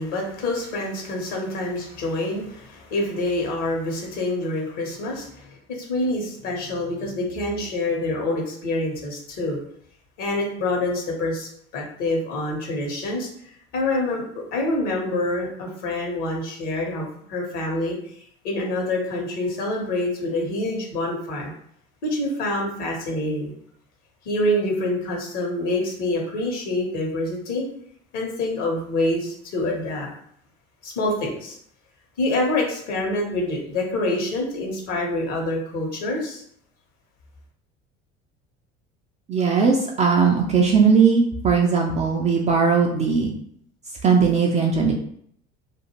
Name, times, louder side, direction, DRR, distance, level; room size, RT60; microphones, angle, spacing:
voice 1, 0.0-9.6 10.2-13.3 13.7-14.2 14.5-21.5 22.0-23.5 24.2-27.6 28.1-30.1 30.8-31.6 32.2-36.4, left 2 dB, 55° left, 0 dB, 1.1 m, -26 dB
voice 2, 39.3-43.3 44.0-44.9, right 5 dB, 20° right, 0 dB, 0.3 m, -19 dB
2.5 x 2.3 x 2.9 m, 0.65 s
figure-of-eight pair, 65°, 35 cm